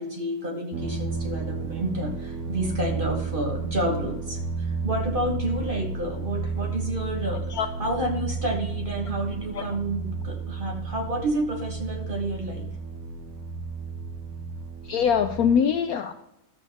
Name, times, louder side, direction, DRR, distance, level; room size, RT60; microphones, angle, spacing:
voice 1, 0.0-12.7, right 1 dB, 30° right, 2 dB, 1.3 m, -30 dB
sound 1, 0.7-15.5, right 4 dB, 55° right, 1.4 m, -32 dB
voice 2, 14.9-16.1, left 7 dB, 70° left, 7 dB, 0.9 m, -22 dB
12.5 x 7.3 x 3.5 m, 0.84 s
omnidirectional pair, 2.0 m